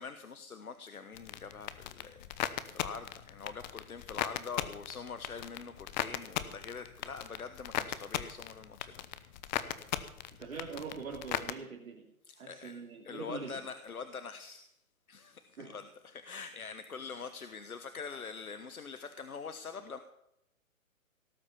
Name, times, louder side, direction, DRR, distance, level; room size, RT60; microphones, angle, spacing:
voice 1, 0.0-9.1 9.5-9.7 12.3-12.7 13.0-14.7 15.1-20.0, left 5 dB, 85° left, 10 dB, 1.3 m, -44 dB
sound 1, 1.1-11.5, left 12 dB, 30° left, 1.0 m, -38 dB
voice 2, 10.4-12.0 12.4-13.6 15.6-15.8, right 5 dB, 70° right, -1 dB, 3.1 m, -43 dB
18.0 x 8.2 x 7.1 m, 0.81 s
figure-of-eight pair, 130°, 42 cm